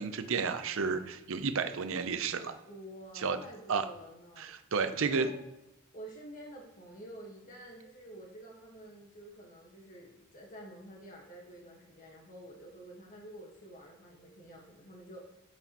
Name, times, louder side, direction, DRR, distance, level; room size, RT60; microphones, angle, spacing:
voice 1, 0.0-2.5 3.2-3.4 3.7-3.8 4.4-5.3, right 5 dB, 65° right, 10 dB, 0.7 m, -31 dB
voice 2, 2.6-4.5 4.9-5.5 5.9-15.4, right 1 dB, 40° left, -2 dB, 1.5 m, -49 dB
9.0 x 6.3 x 3.0 m, 0.91 s
head